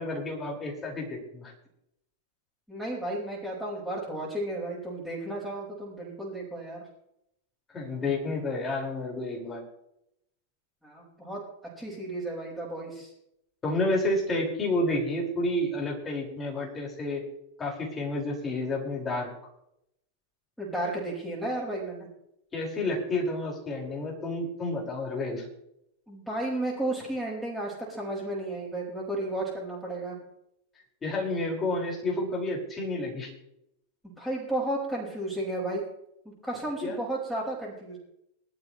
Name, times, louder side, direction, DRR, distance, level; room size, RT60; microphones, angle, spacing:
voice 1, 0.0-1.5 7.7-9.6 13.6-17.2 17.6-19.3 22.5-25.5 31.0-33.3 36.8-37.0, left 2 dB, 20° left, -2 dB, 5.4 m, -30 dB
voice 2, 2.7-6.8 10.8-11.4 11.8-13.1 20.6-22.1 26.1-30.2 34.2-35.8 36.2-38.0, right 1 dB, 5° left, -7 dB, 5.6 m, -33 dB
22.0 x 12.5 x 3.3 m, 0.80 s
figure-of-eight pair, 90°, 0 cm